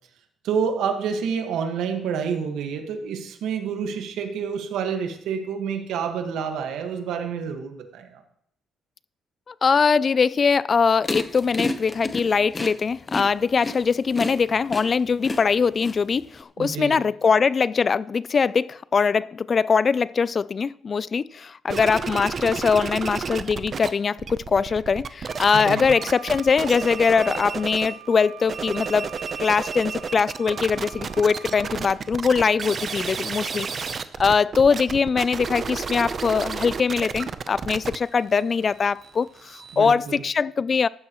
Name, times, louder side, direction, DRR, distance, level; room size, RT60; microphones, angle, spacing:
voice 1, 0.4-8.2 16.6-17.0 25.5-25.9 39.7-40.2, right 6 dB, 85° right, 1.6 m, -28 dB
voice 2, 9.5-29.1 29.4-40.9, left 5 dB, 40° left, 0.3 m, -22 dB
sound 1, 11.0-16.4, left 2 dB, 25° left, 1.0 m, -30 dB
Random Uncut Stuff, 21.7-23.9 24.1-28.0 28.4-39.9, right 5 dB, 45° right, 0.7 m, -32 dB
Wind instrument woodwind instrument, 25.3-32.0, right 10 dB, 65° right, 1.8 m, -44 dB
15.0 x 11.5 x 3.1 m
cardioid pair, 90°, 0 cm